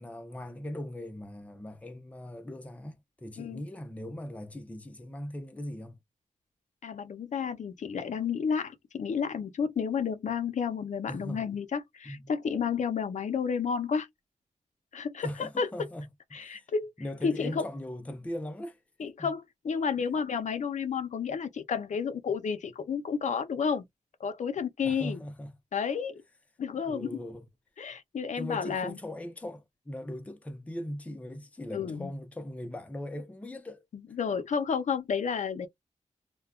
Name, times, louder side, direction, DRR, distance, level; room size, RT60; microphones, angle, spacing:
voice 1, 0.0-6.0 11.1-11.5 12.1-12.3 15.2-16.7 17.0-19.3 20.0-20.1 24.8-25.6 26.7-27.5 28.4-33.9, left 1 dB, 10° left, 0.5 m, -40 dB
voice 2, 6.8-14.1 14.9-15.7 16.3-16.9 17.2-17.7 19.0-23.8 24.2-25.2 25.7-26.1 26.6-27.2 27.8-29.0 31.7-32.1 34.2-35.7, left 6 dB, 70° left, 0.5 m, -31 dB
2.2 x 2.1 x 3.5 m
wide cardioid pair, 160°, 13 cm